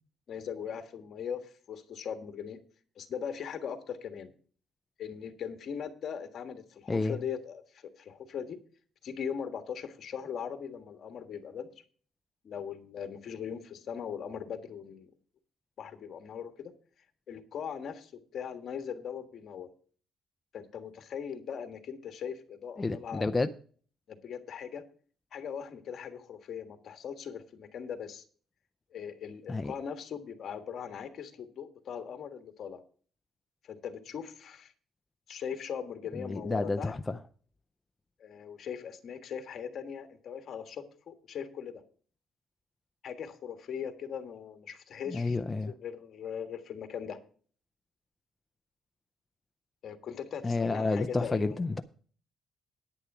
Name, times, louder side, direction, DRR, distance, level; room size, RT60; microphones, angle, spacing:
voice 1, 0.3-2.6 3.0-4.3 5.0-8.6 9.0-11.7 12.4-15.1 15.8-16.7 17.3-19.7 20.5-23.3 24.1-24.8 25.3-28.2 28.9-32.8 33.6-34.7 35.3-36.9 38.2-41.8 43.0-45.4 45.7-47.2 49.8-51.6, left 7 dB, 50° left, 1.5 m, -40 dB
voice 2, 22.8-23.5 29.5-29.7 36.2-37.2 45.1-45.7 50.4-51.8, left 3 dB, 15° left, 0.4 m, -30 dB
9.9 x 9.6 x 4.8 m
cardioid pair, 135°, 0 cm